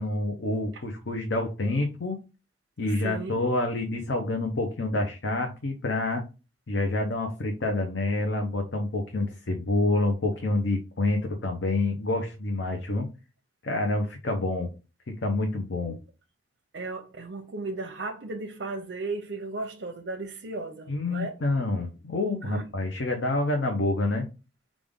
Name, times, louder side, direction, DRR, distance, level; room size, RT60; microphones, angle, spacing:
voice 1, 0.0-2.2 2.8-6.2 6.7-13.1 13.6-14.7 15.1-16.0 20.9-24.3, left 2 dB, 85° left, 0.7 m, -27 dB
voice 2, 2.9-3.4 15.8-16.0 16.7-21.3 22.4-22.6, right 3 dB, 75° right, 0.6 m, -35 dB
5.2 x 2.5 x 3.6 m
head